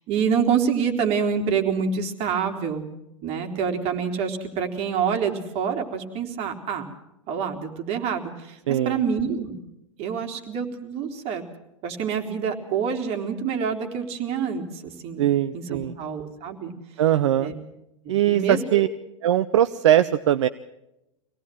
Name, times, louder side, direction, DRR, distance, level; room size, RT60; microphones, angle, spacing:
voice 1, 0.1-2.9 3.2-6.9 7.3-9.6 10.0-11.4 11.8-15.3 15.5-16.7 17.4-17.5 18.3-18.8, right 6 dB, 40° right, 4 dB, 3.7 m, -27 dB
voice 2, 8.7-9.0 15.2-15.9 17.0-17.5 18.1-18.9 19.2-20.5, right 11 dB, 65° right, 12 dB, 0.8 m, -20 dB
25.5 x 18.0 x 7.7 m, 0.88 s
figure-of-eight pair, 95°, 16 cm